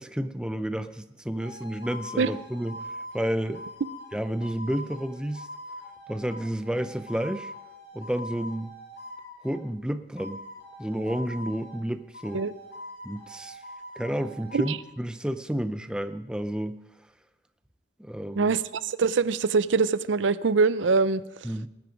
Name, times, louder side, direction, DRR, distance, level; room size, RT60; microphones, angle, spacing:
voice 1, 0.0-2.8 3.1-3.6 4.1-5.5 6.1-7.5 7.9-8.7 9.4-10.4 10.8-12.4 13.0-13.6 14.0-16.8 18.0-18.6 21.4-21.7, right 1 dB, 5° right, 10 dB, 0.4 m, -31 dB
sound 1, 1.4-9.7 10.2-11.9 12.1-14.8, equal, 70° left, 3.8 m, -43 dB
voice 2, 18.4-21.2, right 4 dB, 80° right, 16 dB, 0.5 m, -23 dB
19.0 x 9.5 x 5.1 m, 0.97 s
head